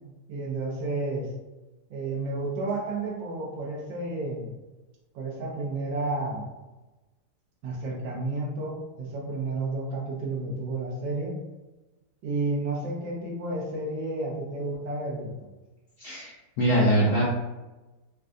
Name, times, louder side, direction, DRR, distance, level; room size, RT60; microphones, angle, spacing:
voice 1, 0.3-1.3 1.9-4.5 5.1-6.5 7.6-11.4 12.2-15.3, right 2 dB, 85° right, -3 dB, 1.6 m, -31 dB
voice 2, 16.0-17.2, right 1 dB, 70° left, -6 dB, 0.7 m, -23 dB
3.9 x 2.2 x 2.5 m, 1.1 s
omnidirectional pair, 2.0 m